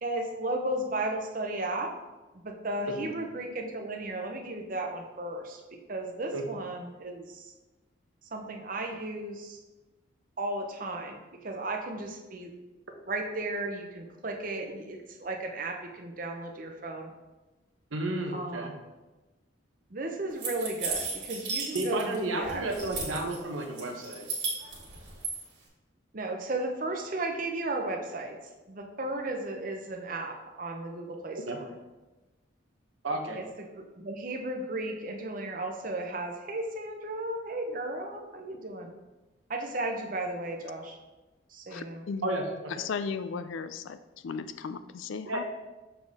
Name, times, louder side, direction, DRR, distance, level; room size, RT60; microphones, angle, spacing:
voice 1, 0.0-1.9 2.3-5.6 5.9-7.5 8.3-9.6 10.4-12.5 13.1-17.1 18.3-18.7 19.9-23.3 26.1-28.4 28.7-31.7 33.3-38.9 39.5-41.0 41.5-42.0, right 2 dB, 40° right, 2 dB, 0.7 m, -35 dB
voice 2, 17.9-18.7 21.7-24.3 31.5-31.6 33.0-33.4 42.2-42.7 45.3-45.4, right 2 dB, 85° right, 2 dB, 0.9 m, -32 dB
sound 1, 20.4-22.2 22.4-23.4 23.8-25.3, right 4 dB, 70° right, 1.8 m, -34 dB
voice 3, 41.7-42.3 42.7-44.0 44.2-45.4, left 5 dB, 75° left, 11 dB, 0.4 m, -35 dB
6.8 x 4.2 x 3.5 m, 1.1 s
head